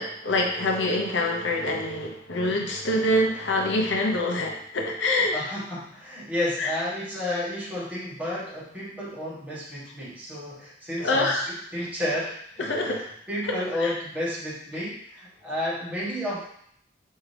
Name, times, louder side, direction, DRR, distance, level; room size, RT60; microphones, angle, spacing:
voice 1, 0.0-5.3 6.6-6.7 11.0-11.5 12.6-13.0 13.4-13.9, left 1 dB, 80° left, 1 dB, 0.7 m, -25 dB
voice 2, 5.3-11.5 11.7-16.4, left 1 dB, 10° right, -8 dB, 1.4 m, -31 dB
4.8 x 2.7 x 3.3 m, 0.68 s
head